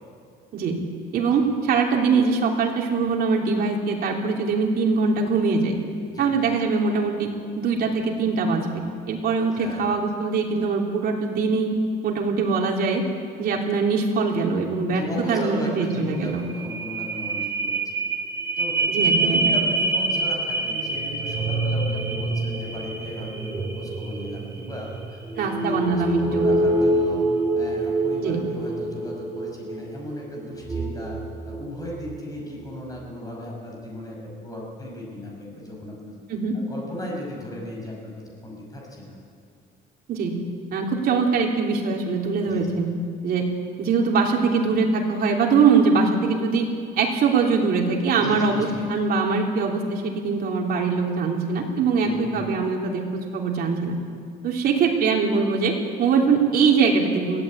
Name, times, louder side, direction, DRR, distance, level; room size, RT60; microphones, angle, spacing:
voice 1, 1.1-5.7 6.2-7.3 7.6-8.7 9.1-11.7 12.0-13.0 13.4-15.0 15.3-16.5 18.9-19.4 25.4-26.5 28.2-28.4 36.3-36.6 40.1-40.4 40.7-42.9 43.2-43.5 43.8-46.7 47.0-53.0 53.3-54.0 54.4-57.4, right 4 dB, 50° right, 0 dB, 3.3 m, -22 dB
voice 2, 9.3-9.9 14.9-17.8 18.6-27.3 27.5-31.2 31.4-36.2 36.5-38.1 38.4-39.2 42.4-42.7 48.2-48.9 52.0-52.3, left 1 dB, 20° left, -1 dB, 5.9 m, -36 dB
sound 1, 16.3-32.2 32.7-32.8, right 2 dB, 15° right, 3.5 m, -26 dB
22.0 x 16.0 x 8.8 m, 2.3 s
cardioid pair, 160°, 19 cm